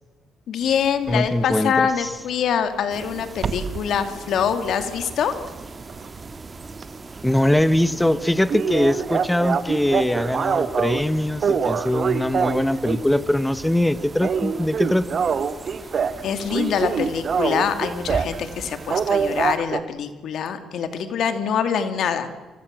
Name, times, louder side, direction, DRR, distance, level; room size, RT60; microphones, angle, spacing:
voice 1, 0.5-5.3 16.2-22.3, left 7 dB, 70° left, 8 dB, 2.5 m, -24 dB
voice 2, 1.1-2.1 7.2-15.1, left 1 dB, 5° left, 14 dB, 1.1 m, -22 dB
sound 1, 1.1-1.3 3.4-3.8 4.3-6.4 6.7-6.9 7.2-7.3 7.6-7.7 7.9-8.0 8.5-11.0 11.4-13.1 13.5-13.8 14.1-16.2 16.5-18.4 18.9-19.8, right 6 dB, 50° right, 1.5 m, -24 dB
sound 2, 2.9-19.6, right 3 dB, 25° right, 1.9 m, -40 dB
28.5 x 25.0 x 7.6 m, 1.3 s
cardioid pair, 90°, 0 cm